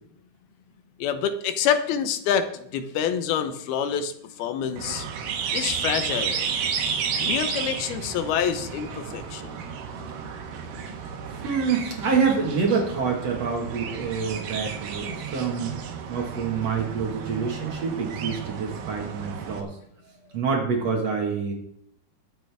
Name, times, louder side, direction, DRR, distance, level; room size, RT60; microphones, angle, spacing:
voice 1, 1.0-4.1 4.4-5.1 5.5-6.5 7.2-9.6, left 8 dB, 85° left, 9 dB, 2.8 m, -27 dB
sound 1, 4.8-19.6, right 6 dB, 75° right, 3.2 m, -32 dB
voice 2, 11.3-15.7 16.1-19.7 20.3-21.5, right 5 dB, 50° right, 1 dB, 2.4 m, -26 dB
22.0 x 7.9 x 3.5 m, 0.70 s
omnidirectional pair, 4.3 m